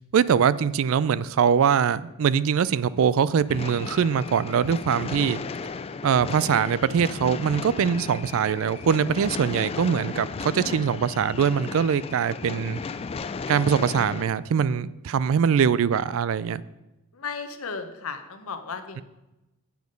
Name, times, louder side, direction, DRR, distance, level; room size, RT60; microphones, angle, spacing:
voice 1, 0.0-5.4 6.0-12.8 13.5-16.6, right 7 dB, 65° right, 18 dB, 0.3 m, -22 dB
sound 1, 3.5-14.3, left 4 dB, 25° left, 0.3 m, -35 dB
voice 2, 17.1-19.0, left 5 dB, 70° left, 7 dB, 0.9 m, -35 dB
8.2 x 7.0 x 5.2 m, 0.99 s
head